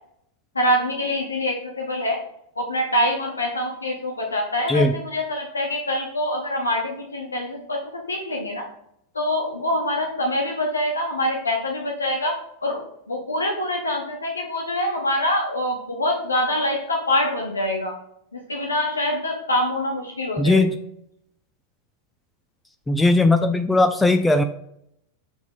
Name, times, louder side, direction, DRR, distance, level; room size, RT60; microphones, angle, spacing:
voice 1, 0.5-2.2 2.6-8.7 9.1-12.8 13.1-17.9 18.3-20.6, left 1 dB, 75° left, 1 dB, 1.0 m, -25 dB
voice 2, 20.4-20.8 22.9-24.4, left 2 dB, 10° left, 7 dB, 0.4 m, -18 dB
6.9 x 4.6 x 3.6 m, 0.75 s
figure-of-eight pair, 90°, 0 cm